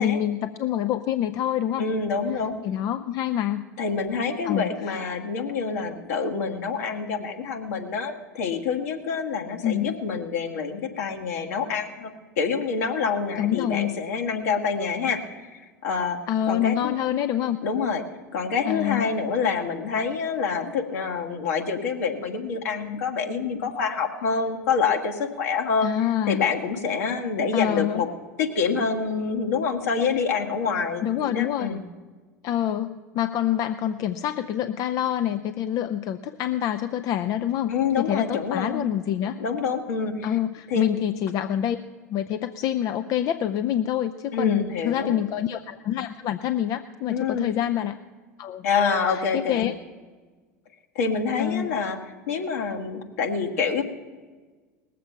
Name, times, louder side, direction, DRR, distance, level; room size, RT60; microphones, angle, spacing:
voice 1, 0.0-1.9 2.3-2.4 2.6-3.6 4.4-5.0 9.6-10.0 13.4-13.9 16.3-17.6 18.7-19.1 25.8-26.5 27.5-28.0 31.0-31.7 32.4-39.4 40.2-41.8 42.1-48.0 48.4-48.7 49.1-49.7 51.4-51.8, left 11 dB, 40° left, 9 dB, 0.5 m, -26 dB
voice 2, 1.8-2.5 3.8-12.1 12.4-16.2 16.5-16.9 17.6-18.0 18.3-25.9 26.3-28.1 28.4-31.8 37.7-38.8 39.4-40.3 40.7-41.0 44.3-45.1 47.1-47.5 48.6-49.7 50.9-52.0 52.3-53.8, left 5 dB, 65° left, 2 dB, 1.7 m, -27 dB
19.5 x 7.6 x 5.7 m, 1.4 s
figure-of-eight pair, 75°, 9 cm